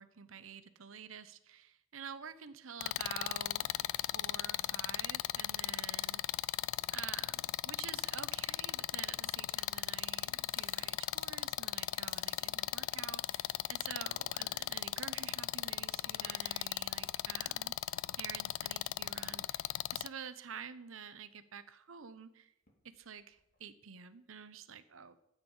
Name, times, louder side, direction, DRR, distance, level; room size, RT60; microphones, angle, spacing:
voice 1, 0.0-6.2 6.9-17.8 18.2-22.5 22.8-25.2, right 6 dB, 80° right, 13 dB, 0.8 m, -49 dB
sound 1, 2.8-20.1, left 13 dB, 85° left, 0.3 m, -37 dB
sound 2, 10.4-17.6, left 4 dB, 25° left, 1.6 m, -64 dB
sound 3, 12.7-13.2 16.0-17.8 18.7-18.8 22.5-24.1, left 2 dB, 45° left, 2.7 m, -65 dB
13.0 x 9.0 x 5.5 m, 0.81 s
head